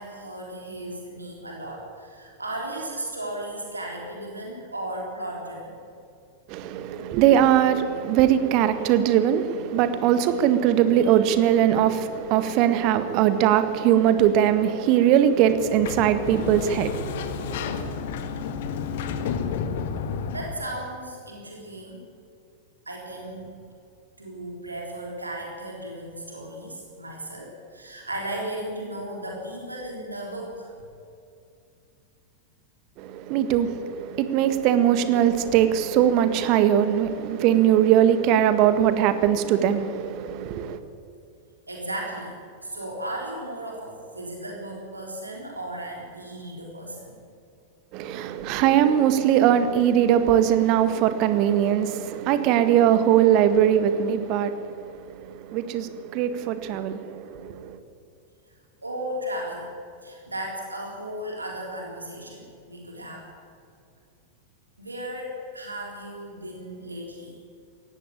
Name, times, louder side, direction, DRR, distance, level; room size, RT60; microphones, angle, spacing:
voice 1, 0.0-5.8 20.3-22.0 22.9-23.6 24.2-30.7 41.7-42.4 42.6-47.1 58.8-59.7 60.0-63.3 64.8-67.4, right 1 dB, 80° right, 3.7 m, -35 dB
voice 2, 6.5-17.9 33.0-40.8 47.9-57.8, right 10 dB, 40° right, 1.7 m, -21 dB
Sliding door, 15.5-20.8, left 6 dB, 55° left, 1.6 m, -31 dB
18.5 x 15.5 x 9.0 m
figure-of-eight pair, 90°, 0 cm